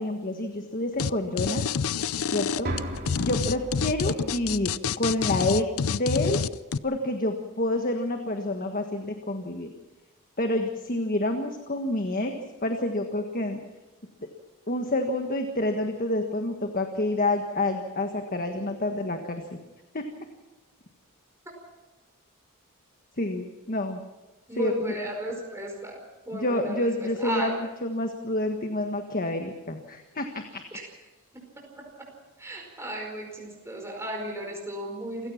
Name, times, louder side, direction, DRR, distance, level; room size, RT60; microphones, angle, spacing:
voice 1, 0.0-1.6 2.3-2.7 3.2-6.4 6.8-9.7 10.4-12.3 12.6-13.6 14.7-19.6 19.9-20.0 23.2-24.0 24.6-25.0 26.3-27.6 27.8-30.6, left 1 dB, 40° left, 5 dB, 1.6 m, -28 dB
sound 1, 1.0-1.1 1.4-6.8, left 6 dB, 75° left, 0.6 m, -27 dB
sound 2, 2.6-6.6, right 1 dB, 45° right, 3.0 m, -38 dB
voice 2, 24.5-27.5 30.7-30.9 31.3-32.1 32.4-35.3, right 1 dB, 10° right, 0 dB, 4.9 m, -35 dB
28.5 x 17.0 x 5.9 m, 1.1 s
head